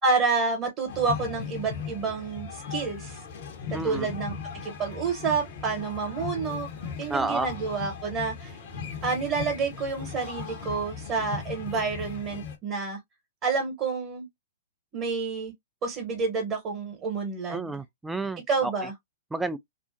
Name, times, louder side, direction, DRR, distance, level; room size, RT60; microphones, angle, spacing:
voice 1, 0.0-3.2 3.7-4.3 4.6-6.7 7.0-8.6 9.0-13.0 13.4-14.2 14.9-15.5 15.8-17.7 18.5-18.9, right 4 dB, 30° right, 1.0 m, -29 dB
sound 1, 0.9-12.6, left 6 dB, 50° left, 0.8 m, -38 dB
voice 2, 3.7-4.1 7.1-7.5 17.5-18.7 19.3-19.6, right 2 dB, 5° right, 0.3 m, -30 dB
2.5 x 2.0 x 2.5 m
hypercardioid pair, 120°, 0 cm